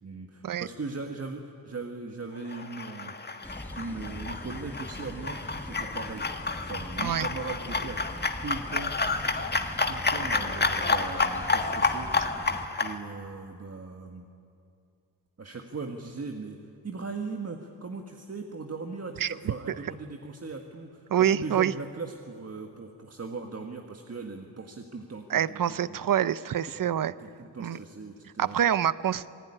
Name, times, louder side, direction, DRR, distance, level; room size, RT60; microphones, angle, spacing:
voice 1, 0.0-3.2 3.8-6.3 6.6-8.0 8.4-8.9 9.9-12.2 12.8-14.3 15.4-16.6 16.8-26.0 26.7-28.6, right 4 dB, 35° right, 3 dB, 1.7 m, -39 dB
sound 1, 2.5-12.9, left 3 dB, 25° left, 1.6 m, -30 dB
sound 2, 3.4-12.7, left 1 dB, 5° left, 1.5 m, -42 dB
voice 2, 21.1-21.7 25.3-27.1 27.6-27.8 28.4-29.3, right 10 dB, 50° right, 16 dB, 0.8 m, -26 dB
27.0 x 19.5 x 9.9 m, 2.5 s
wide cardioid pair, 115°, 42 cm